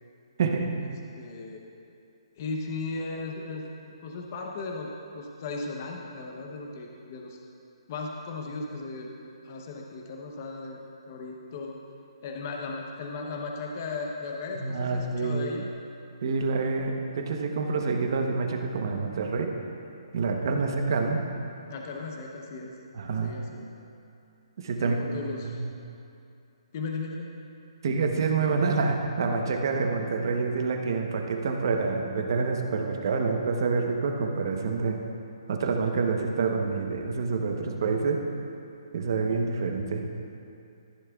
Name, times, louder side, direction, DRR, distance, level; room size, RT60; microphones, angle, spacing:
voice 1, 0.4-0.7 14.6-15.4 16.2-19.5 20.1-21.2 22.9-23.3 24.6-25.0 25.4-25.7 27.8-35.0 35.5-38.2 38.9-40.0, right 4 dB, 45° right, 3 dB, 0.9 m, -27 dB
voice 2, 1.2-1.6 2.4-3.7 4.0-7.4 7.9-9.1 9.4-11.8 12.2-15.6 21.7-22.7 23.2-23.7 24.8-25.6 26.7-27.3, left 3 dB, 30° left, 0 dB, 0.8 m, -36 dB
14.0 x 10.0 x 2.4 m, 2.6 s
hypercardioid pair, 170°, 3 cm